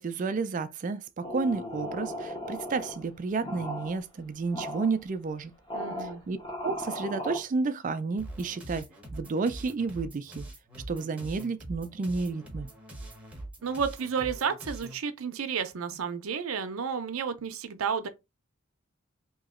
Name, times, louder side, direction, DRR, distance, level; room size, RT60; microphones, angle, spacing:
voice 1, 0.0-5.5 6.3-6.4 6.6-10.5 10.9-12.7, right 4 dB, 40° right, 0.3 m, -31 dB
sound 1, 1.2-3.0 3.4-4.0 4.5-5.0 5.7-7.4, equal, 25° left, 1.1 m, -36 dB
voice 2, 5.7-6.2 13.6-18.1, right 6 dB, 80° right, 0.6 m, -31 dB
sound 2, 8.2-15.0, right 1 dB, 5° right, 0.9 m, -43 dB
3.0 x 2.8 x 3.6 m
head